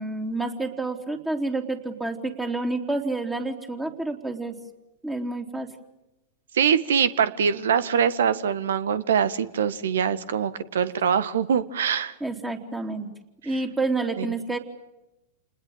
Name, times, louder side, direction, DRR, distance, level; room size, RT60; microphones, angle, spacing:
voice 1, 0.0-4.5 5.0-5.7 12.2-13.1 13.4-14.6, right 2 dB, 10° right, 3 dB, 3.4 m, -29 dB
voice 2, 6.5-12.1 14.2-14.3, right 7 dB, 65° right, 15 dB, 1.6 m, -23 dB
29.0 x 20.5 x 9.0 m, 0.94 s
figure-of-eight pair, 95°, 0 cm